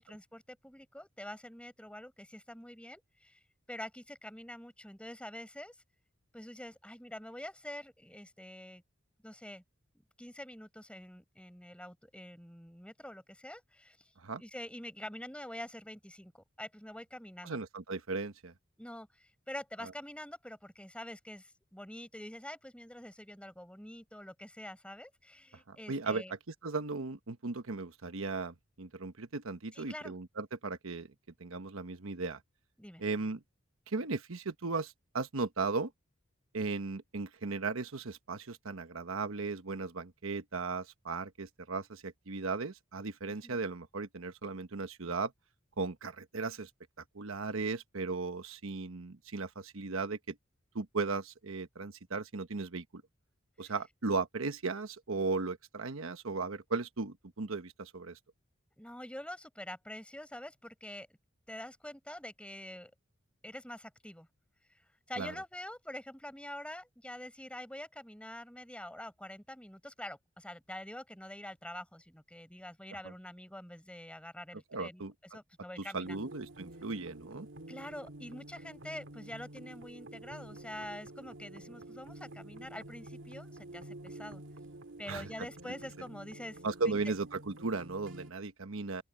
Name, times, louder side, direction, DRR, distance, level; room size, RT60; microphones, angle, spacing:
voice 1, 0.0-3.4 3.7-5.8 6.3-8.8 9.2-9.6 10.2-14.1 14.4-17.6 18.8-26.3 29.7-30.1 32.8-33.0 43.4-43.6 53.6-53.8 58.8-61.1 61.5-62.9 63.4-64.3 64.7-64.8 65.1-75.0 75.3-76.3 77.7-84.4 85.0-87.1, left 1 dB, 5° left, 7.0 m, -46 dB
voice 2, 17.4-18.5 19.8-19.9 25.7-26.2 26.6-31.1 31.4-32.4 33.0-33.4 33.9-35.9 36.5-45.3 45.8-46.7 47.1-50.3 50.7-53.0 53.6-58.2 65.2-65.3 74.7-75.1 75.8-77.5 85.1-85.5 86.6-89.0, right 3 dB, 80° right, 1.1 m, -36 dB
sound 1, 76.0-88.3, right 1 dB, 65° right, 2.5 m, -49 dB
open air
head